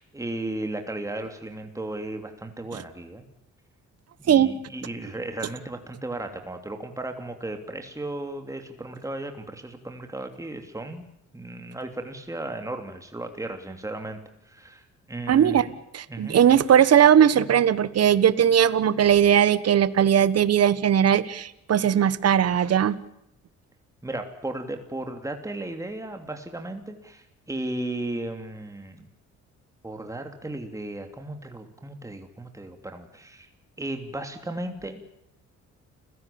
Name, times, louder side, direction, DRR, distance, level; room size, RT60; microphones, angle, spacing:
voice 1, 0.0-3.2 4.2-11.1 11.3-14.2 14.5-15.7 16.1-16.6 24.0-29.1 29.8-33.5 33.8-35.0, right 2 dB, 10° right, 5 dB, 3.0 m, -35 dB
voice 2, 15.3-15.7 15.9-23.0, right 9 dB, 55° right, 16 dB, 1.3 m, -19 dB
29.5 x 16.5 x 8.7 m, 0.81 s
cardioid pair, 90°, 30 cm